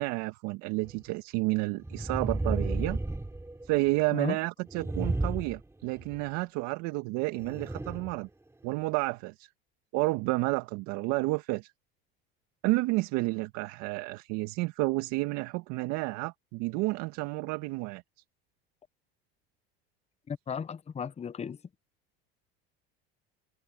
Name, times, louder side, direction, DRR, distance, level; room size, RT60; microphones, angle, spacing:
voice 1, 0.0-3.0 3.6-8.3 8.6-9.5 9.9-11.7 12.6-18.0, right 22 dB, 70° right, 1.8 m, -30 dB
sound 1, 0.9-1.0 1.8-4.0 4.7-6.2 7.4-8.2 8.7-8.8, right 2 dB, 10° right, 3.2 m, -33 dB
voice 2, 20.3-21.6, left 6 dB, 20° left, 0.8 m, -35 dB
hypercardioid pair, 85°, 30 cm